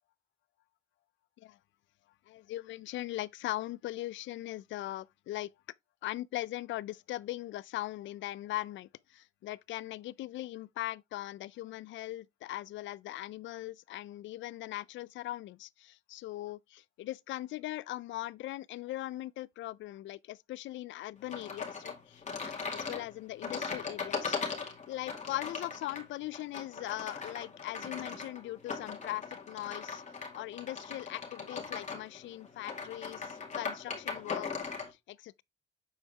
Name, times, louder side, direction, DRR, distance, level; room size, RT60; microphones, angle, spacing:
voice 1, 2.3-5.5 6.0-24.4 24.9-30.0 30.3-34.5 35.1-35.4, left 15 dB, 70° left, 0.4 m, -40 dB
sound 1, 21.3-34.9, left 5 dB, 35° left, 2.2 m, -39 dB
7.5 x 4.6 x 3.3 m
cardioid pair, 90°, 20 cm